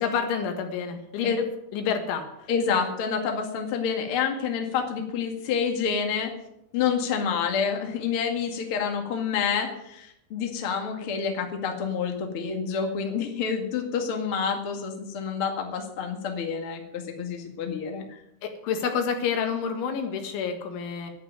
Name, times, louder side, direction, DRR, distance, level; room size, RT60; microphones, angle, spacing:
voice 1, 0.0-2.5 18.4-21.1, left 6 dB, 90° left, 5 dB, 4.2 m, -29 dB
voice 2, 2.5-6.3 6.7-18.2, left 6 dB, 40° left, 3 dB, 2.0 m, -28 dB
11.5 x 10.0 x 9.0 m, 0.81 s
omnidirectional pair, 5.2 m